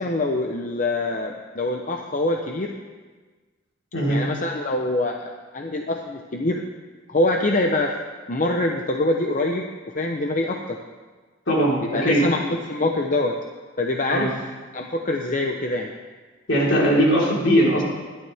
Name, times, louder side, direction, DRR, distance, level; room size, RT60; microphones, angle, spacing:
voice 1, 0.0-2.7 4.1-6.6 7.1-7.9 8.3-10.8 11.9-13.4 13.8-14.4 14.7-15.9, left 2 dB, 40° left, 3 dB, 0.8 m, -24 dB
voice 2, 11.5-12.2 14.1-14.3 16.5-17.8, equal, 65° left, -4 dB, 4.1 m, -19 dB
21.0 x 12.0 x 3.5 m, 1.4 s
head